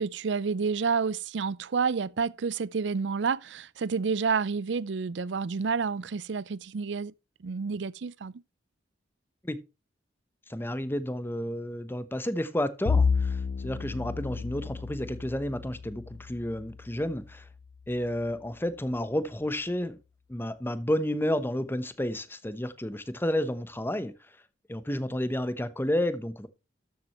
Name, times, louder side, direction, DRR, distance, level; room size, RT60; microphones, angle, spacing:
voice 1, 0.0-7.1 7.4-8.4, right 5 dB, 70° right, 0.5 m, -29 dB
voice 2, 10.5-17.4 17.9-20.0 20.3-24.1 24.7-26.5, left 1 dB, 10° left, 0.9 m, -31 dB
Bowed string instrument, 12.8-17.4, left 5 dB, 65° left, 0.4 m, -31 dB
13.0 x 7.5 x 3.0 m
head